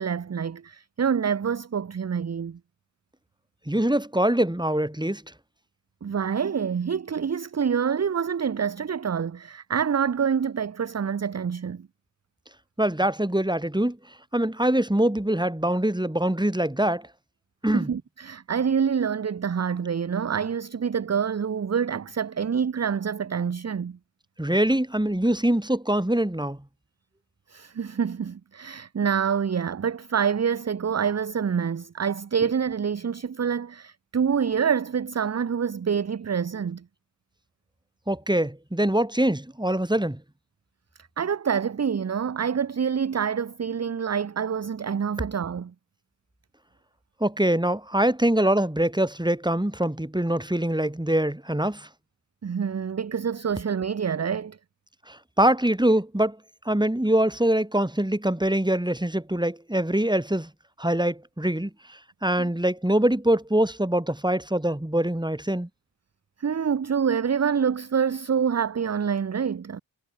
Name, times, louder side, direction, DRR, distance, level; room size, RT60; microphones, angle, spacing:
voice 1, 0.0-2.6 6.0-11.9 17.7-24.0 27.5-36.8 41.2-45.7 52.4-54.6 66.4-69.8, right 7 dB, 35° right, 0.6 m, -26 dB
voice 2, 3.7-5.2 12.8-14.0 14.3-17.1 17.6-17.9 24.4-26.6 38.1-40.2 47.2-51.9 55.1-56.4 56.6-60.5 60.8-65.7, right 1 dB, 10° right, 2.7 m, -24 dB
wide cardioid pair, 50°, 47 cm